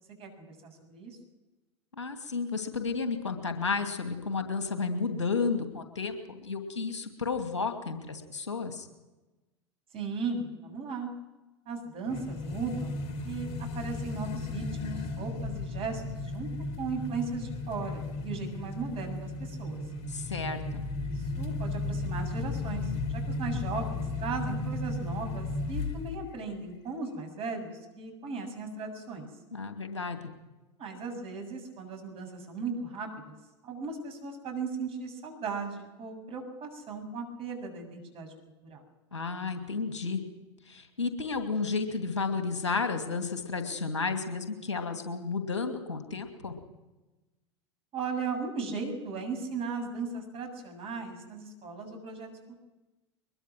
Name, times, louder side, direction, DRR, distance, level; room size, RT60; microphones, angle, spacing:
voice 1, 0.2-1.2 9.9-11.1 11.7-13.0 13.2-16.5 16.8-19.8 20.9-29.3 30.8-33.4 33.6-38.3 38.6-38.8 47.9-52.3, right 4 dB, 40° right, 4 dB, 7.3 m, -37 dB
voice 2, 2.0-8.9 20.1-20.8 29.5-30.2 39.1-40.2 40.7-46.5, left 4 dB, 80° left, 6 dB, 2.6 m, -32 dB
sound 1, 12.1-26.3, left 2 dB, 50° left, 3.1 m, -35 dB
22.5 x 22.0 x 6.2 m, 1.1 s
figure-of-eight pair, 80°, 15 cm